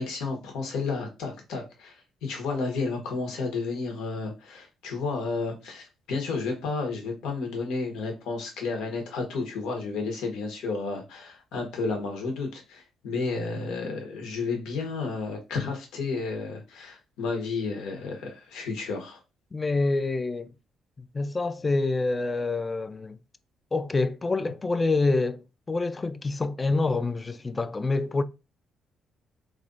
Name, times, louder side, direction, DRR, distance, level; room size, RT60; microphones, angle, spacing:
voice 1, 0.0-19.2, left 4 dB, 85° left, 1.0 m, -32 dB
voice 2, 19.5-20.5 21.0-23.2 23.7-25.4 25.7-28.2, left 3 dB, 25° left, 0.4 m, -26 dB
3.2 x 2.5 x 3.8 m
cardioid pair, 90°, 0 cm